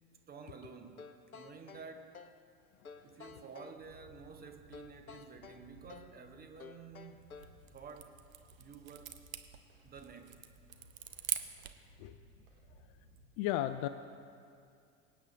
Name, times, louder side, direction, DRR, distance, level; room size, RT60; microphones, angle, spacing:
voice 1, 0.3-2.2 3.0-7.4 7.7-8.2 8.6-9.1 9.8-10.5, right 5 dB, 20° right, 6 dB, 1.0 m, -51 dB
sound 1, 1.0-2.4 2.8-3.8 4.7-6.2 6.6-7.6, left 5 dB, 90° left, 0.6 m, -52 dB
sound 2, 3.8-13.2, right 1 dB, 50° right, 2.1 m, -62 dB
sound 3, 7.2-11.9, right 9 dB, 75° right, 0.8 m, -44 dB
voice 2, 13.4-13.9, left 13 dB, 40° left, 12 dB, 0.5 m, -33 dB
25.0 x 8.8 x 2.5 m, 2.4 s
figure-of-eight pair, 75°, 41 cm